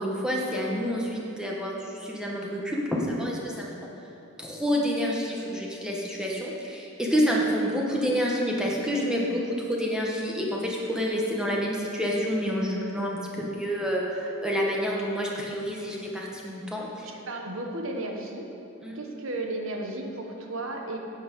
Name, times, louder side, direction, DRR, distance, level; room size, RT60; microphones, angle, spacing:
voice 1, 0.0-3.7 4.4-17.1 18.8-18.9, equal, 5° right, -3 dB, 1.2 m, -28 dB
voice 2, 17.0-18.4 18.9-21.0, right 2 dB, 65° right, 2 dB, 1.2 m, -34 dB
11.0 x 7.8 x 5.3 m, 2.8 s
head